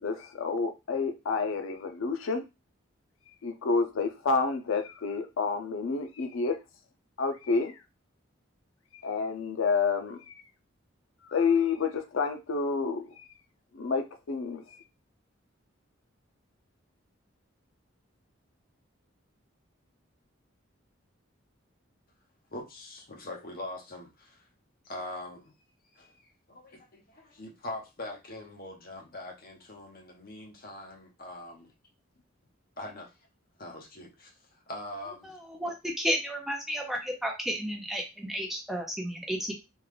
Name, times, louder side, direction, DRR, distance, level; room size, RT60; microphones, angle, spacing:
voice 1, 0.0-2.4 3.4-6.6 7.2-7.8 8.9-10.4 11.2-13.2 13.7-14.8, left 4 dB, 80° left, 7 dB, 0.5 m, -29 dB
voice 2, 22.5-24.5 24.8-25.5 25.9-31.7 32.8-33.1 33.6-35.4, left 1 dB, 45° left, 1 dB, 1.0 m, -42 dB
voice 3, 35.5-39.5, equal, ahead, 1 dB, 0.6 m, -32 dB
3.6 x 2.3 x 3.2 m, 0.25 s
head